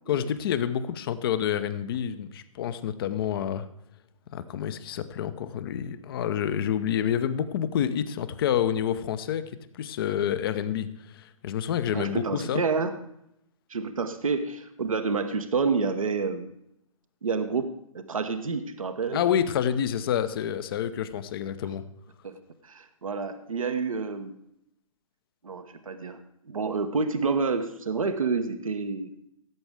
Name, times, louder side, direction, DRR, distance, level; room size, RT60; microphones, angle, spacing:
voice 1, 0.1-3.7 4.3-12.6 19.1-21.8, left 9 dB, 45° left, 13 dB, 0.8 m, -28 dB
voice 2, 11.9-12.9 13.7-16.5 17.2-19.2 22.2-22.4 22.6-24.3 25.4-26.2 26.4-29.1, right 4 dB, 75° right, 8 dB, 1.0 m, -29 dB
16.5 x 8.0 x 3.5 m, 0.79 s
figure-of-eight pair, 120°, 18 cm